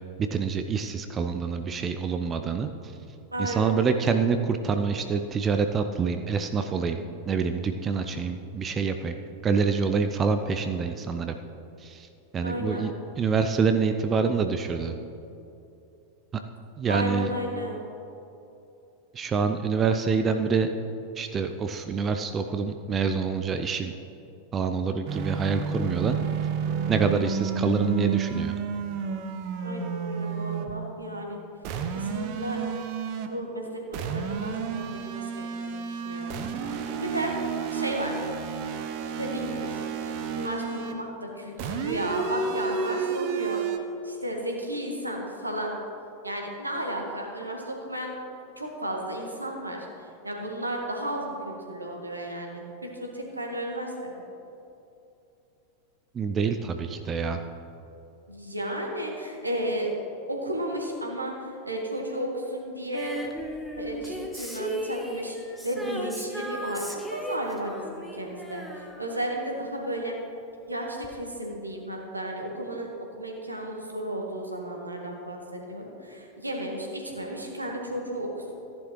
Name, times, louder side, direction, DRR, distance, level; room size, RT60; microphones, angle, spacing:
voice 1, 0.2-2.7 3.4-9.1 9.4-11.3 11.8-12.1 12.3-12.9 13.2-14.9 16.8-17.3 19.1-20.7 21.2-23.9 24.5-26.2 26.9-28.6 56.1-57.4, right 5 dB, 25° right, 7 dB, 0.5 m, -26 dB
voice 2, 3.3-3.8 12.4-12.9 16.9-17.8 29.6-31.4 31.9-32.6 33.3-33.8 34.1-36.6 37.0-37.3 37.7-38.1 39.1-43.8 44.0-45.7 46.2-48.1 48.6-54.2 58.3-59.9 60.3-63.2 63.8-70.2 70.7-72.9 73.2-78.5, right 1 dB, 85° right, 1 dB, 1.6 m, -33 dB
sound 1, 25.1-30.8 31.6-33.4 33.9-41.0 41.6-43.8, right 6 dB, 45° right, 0.8 m, -31 dB
Female singing, 62.9-69.9 71.0-71.1, equal, ahead, 1.2 m, -36 dB
14.5 x 10.5 x 3.2 m, 2.8 s
figure-of-eight pair, 90°, 0 cm